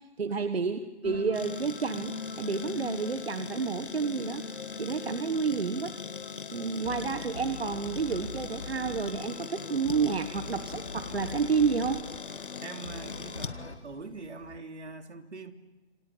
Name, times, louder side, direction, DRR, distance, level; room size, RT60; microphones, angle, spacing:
voice 1, 0.2-4.4 4.8-5.9 6.5-12.0, right 5 dB, 65° right, 10 dB, 1.6 m, -30 dB
sound 1, 1.0-13.8, left 4 dB, 85° left, 3.6 m, -42 dB
sound 2, 1.3-14.6, left 6 dB, 50° left, 1.8 m, -42 dB
voice 2, 12.6-15.5, right 3 dB, 85° right, 6 dB, 3.3 m, -43 dB
27.0 x 25.0 x 8.6 m, 1.1 s
hypercardioid pair, 180°, 33 cm